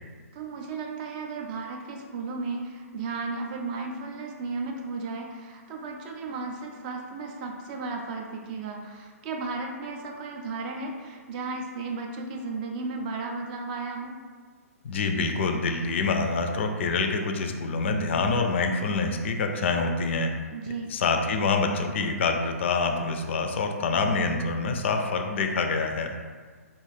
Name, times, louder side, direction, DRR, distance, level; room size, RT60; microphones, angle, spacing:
voice 1, 0.3-14.2 20.5-20.9, right 3 dB, 30° right, 2 dB, 0.4 m, -34 dB
voice 2, 14.8-20.3 20.9-26.1, left 4 dB, 45° left, 4 dB, 0.3 m, -26 dB
2.4 x 2.3 x 3.2 m, 1.5 s
figure-of-eight pair, 125°, 8 cm